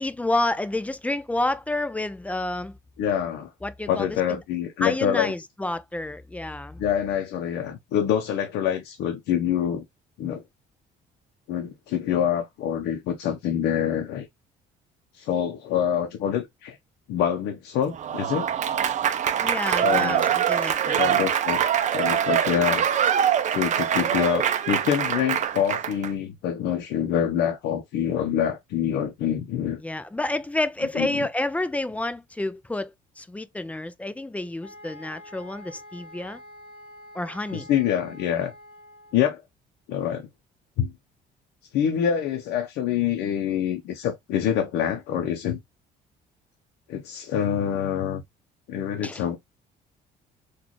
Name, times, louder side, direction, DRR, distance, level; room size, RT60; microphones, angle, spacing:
voice 1, 0.0-2.8 3.6-4.2 4.8-6.8 19.4-21.1 29.8-36.4 37.1-37.7 49.0-49.2, left 2 dB, 10° left, 0.3 m, -29 dB
voice 2, 3.0-3.5 3.9-5.3 6.8-9.8 10.2-10.4 11.5-14.3 15.1-16.8 17.1-18.5 19.8-20.3 21.0-21.6 21.9-22.8 23.5-29.8 30.9-31.2 37.5-38.5 39.1-39.4 39.9-40.3 40.8-40.9 41.7-45.6 46.9-48.2 48.7-49.4, left 9 dB, 80° left, 0.7 m, -26 dB
Applause / Crowd, 17.9-26.1, right 9 dB, 45° right, 0.5 m, -24 dB
sound 1, 34.6-39.3, left 1 dB, 10° right, 2.0 m, -46 dB
3.9 x 2.4 x 2.9 m
cardioid pair, 110°, 17 cm